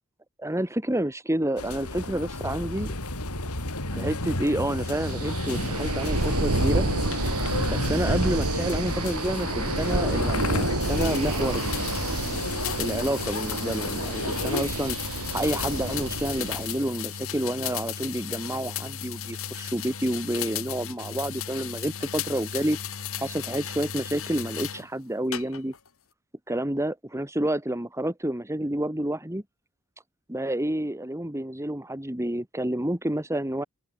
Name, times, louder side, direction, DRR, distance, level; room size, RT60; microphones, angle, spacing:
voice 1, 0.4-2.9 3.9-6.9 7.7-12.3 12.8-15.0 15.3-22.8 23.2-25.7 26.5-29.4 30.3-33.6, right 1 dB, 15° right, 2.3 m, -29 dB
sound 1, 1.6-14.6, left 2 dB, 85° left, 5.5 m, -32 dB
sound 2, 5.0-16.7, right 2 dB, 75° right, 3.4 m, -29 dB
sound 3, 10.8-24.9 25.3-25.9, left 8 dB, 65° left, 3.7 m, -35 dB
open air
head